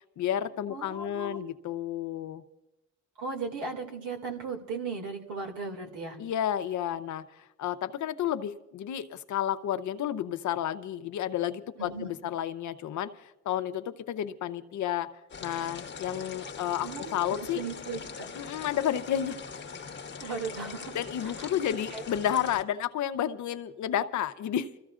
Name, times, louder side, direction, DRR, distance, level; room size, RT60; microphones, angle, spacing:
voice 1, 0.2-2.4 6.2-7.2 7.6-15.1 15.4-17.6 18.4-19.4 20.2-20.3 20.9-24.7, left 10 dB, 70° left, 11 dB, 0.8 m, -31 dB
voice 2, 0.7-1.4 3.2-6.2 11.8-12.1 16.8-17.2 17.5-18.3 20.2-20.9 21.4-22.0, right 4 dB, 90° right, 2 dB, 2.5 m, -37 dB
sound 1, 15.3-22.6, left 5 dB, 40° left, 1.1 m, -42 dB
27.5 x 14.5 x 2.5 m, 0.96 s
cardioid pair, 90°, 30 cm